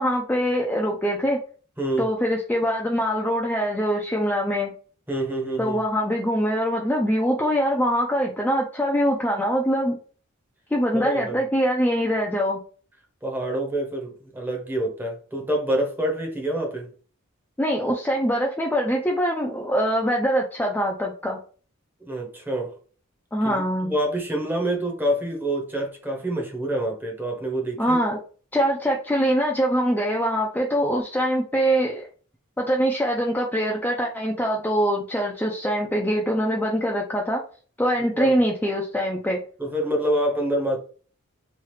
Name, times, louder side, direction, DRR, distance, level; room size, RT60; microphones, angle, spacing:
voice 1, 0.0-1.4 2.0-4.7 5.6-10.0 10.7-12.6 17.6-21.4 23.3-23.9 27.8-28.2 28.5-32.1 32.6-37.4 37.8-39.4, equal, 10° left, 0.3 m, -23 dB
voice 2, 1.8-2.1 5.1-5.8 10.9-11.4 13.2-16.9 22.0-22.7 23.4-28.0 38.2-38.4 39.6-40.8, right 1 dB, 10° right, 0.7 m, -26 dB
3.1 x 2.3 x 3.1 m
head